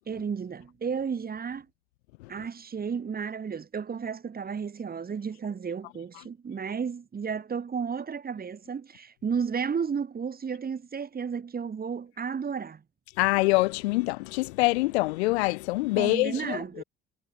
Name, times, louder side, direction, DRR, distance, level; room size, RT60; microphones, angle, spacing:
voice 1, 0.1-1.7 2.3-12.8 16.0-16.8, right 6 dB, 30° right, 1.0 m, -33 dB
voice 2, 13.2-16.6, left 22 dB, 80° left, 1.0 m, -25 dB
hypercardioid pair, 50°, 32 cm